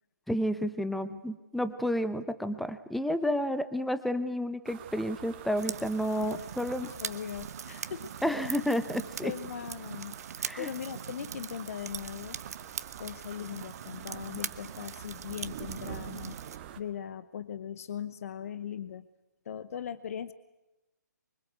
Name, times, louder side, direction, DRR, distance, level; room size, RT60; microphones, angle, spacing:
voice 1, 0.3-6.9 8.2-9.3 10.4-10.7, equal, ahead, 12 dB, 1.0 m, -31 dB
sound 1, 4.6-16.8, right 10 dB, 35° right, 1.6 m, -47 dB
sound 2, 5.6-16.6, right 7 dB, 55° right, 1.1 m, -41 dB
voice 2, 6.8-8.1 9.2-10.1 10.6-12.4 13.0-16.4 16.8-19.1 19.4-20.3, left 9 dB, 50° left, 15 dB, 1.0 m, -39 dB
25.0 x 24.5 x 8.2 m, 0.99 s
figure-of-eight pair, 135°, 10 cm